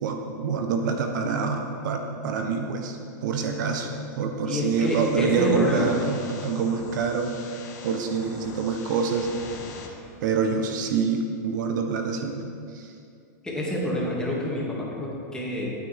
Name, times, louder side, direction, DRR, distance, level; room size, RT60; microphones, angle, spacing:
voice 1, 0.0-3.9 4.2-7.3 7.8-9.4 10.2-12.9, right 5 dB, 70° right, 4 dB, 1.0 m, -26 dB
voice 2, 4.5-5.9 13.4-15.7, left 1 dB, 5° left, -5 dB, 2.4 m, -27 dB
sound 1, 4.8-9.9, left 4 dB, 65° left, 1.8 m, -43 dB
12.5 x 9.2 x 3.6 m, 2.4 s
hypercardioid pair, 135°, 11 cm